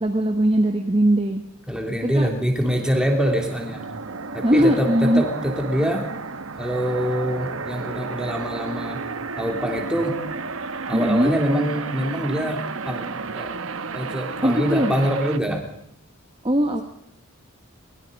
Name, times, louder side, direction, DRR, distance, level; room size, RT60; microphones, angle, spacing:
voice 1, 0.0-1.4 2.1-2.3 4.4-5.2 10.9-11.3 14.4-14.9 16.4-16.8, right 1 dB, 25° right, 4 dB, 1.2 m, -19 dB
voice 2, 1.7-3.8 4.3-6.1 6.6-9.0 9.4-10.2 10.9-12.6 12.8-13.5 13.9-15.6, equal, 5° right, 2 dB, 3.1 m, -24 dB
sound 1, 2.6-15.4, right 4 dB, 70° right, 1.0 m, -32 dB
23.0 x 21.5 x 5.3 m, 0.72 s
head